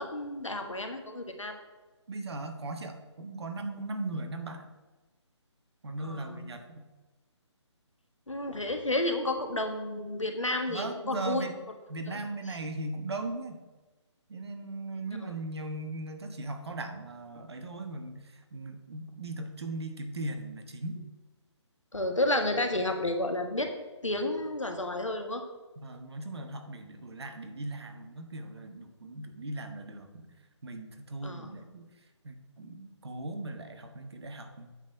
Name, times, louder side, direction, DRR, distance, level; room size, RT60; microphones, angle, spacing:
voice 1, 0.0-1.6 6.0-6.5 8.3-11.5 12.1-12.2 21.9-23.7 24.0-25.4 31.2-31.6, left 1 dB, 90° left, 5 dB, 1.5 m, -31 dB
voice 2, 2.1-4.7 5.8-6.8 10.7-11.5 11.9-13.6 14.3-21.0 25.8-30.3 30.6-31.9 32.2-34.7, right 2 dB, 60° right, 7 dB, 1.3 m, -38 dB
8.8 x 4.4 x 6.0 m, 1.2 s
figure-of-eight pair, 145°, 16 cm